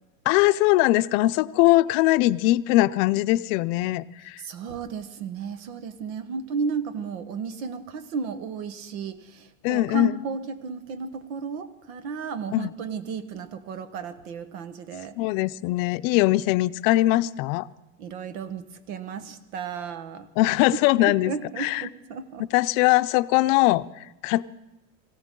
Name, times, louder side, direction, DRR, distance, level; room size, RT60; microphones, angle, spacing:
voice 1, 0.3-4.4 9.6-10.2 12.5-12.7 15.2-17.7 20.4-21.9 22.5-24.4, left 17 dB, 65° left, 14 dB, 0.6 m, -21 dB
voice 2, 4.4-15.2 18.0-20.3 21.0-22.4, right 5 dB, 85° right, 11 dB, 1.4 m, -34 dB
23.0 x 16.0 x 3.7 m, 0.96 s
cardioid pair, 155°, 41 cm